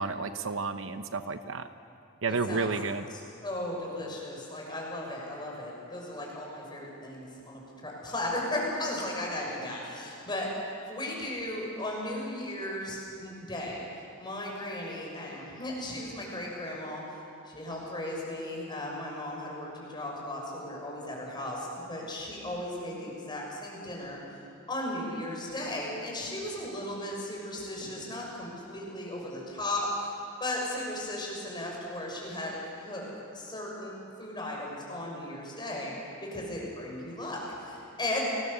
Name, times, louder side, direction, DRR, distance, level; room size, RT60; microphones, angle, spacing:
voice 1, 0.0-1.7 2.2-3.1, right 4 dB, 65° right, 9 dB, 0.9 m, -31 dB
voice 2, 2.3-2.7 3.1-13.8 14.2-17.0 17.5-24.2 24.7-30.1 30.4-33.1 33.3-35.9 36.2-38.2, left 1 dB, 20° left, -2 dB, 6.3 m, -36 dB
29.0 x 20.5 x 6.9 m, 2.5 s
head